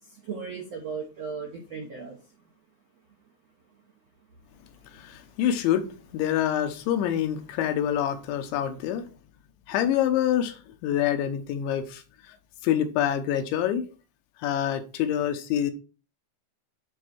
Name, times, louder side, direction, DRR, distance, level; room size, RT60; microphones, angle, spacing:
voice 1, 0.0-2.2, right 5 dB, 70° right, 1.5 m, -36 dB
voice 2, 4.9-5.9 6.1-9.1 9.7-12.4 12.6-13.9 14.4-15.7, left 10 dB, 80° left, 3.3 m, -26 dB
9.8 x 4.2 x 6.2 m
omnidirectional pair, 5.2 m